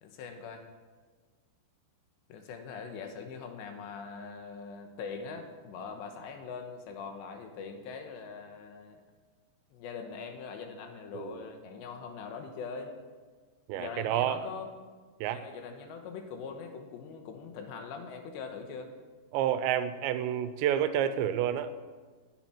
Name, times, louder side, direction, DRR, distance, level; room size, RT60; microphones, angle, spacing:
voice 1, 0.0-0.6 2.3-9.0 9.7-13.0 13.8-14.7 15.3-18.9, left 5 dB, 75° left, 5 dB, 3.4 m, -42 dB
voice 2, 13.7-14.4 15.2-15.4 19.3-21.8, right 10 dB, 85° right, 11 dB, 2.9 m, -29 dB
18.0 x 10.0 x 4.5 m, 1.4 s
omnidirectional pair, 5.1 m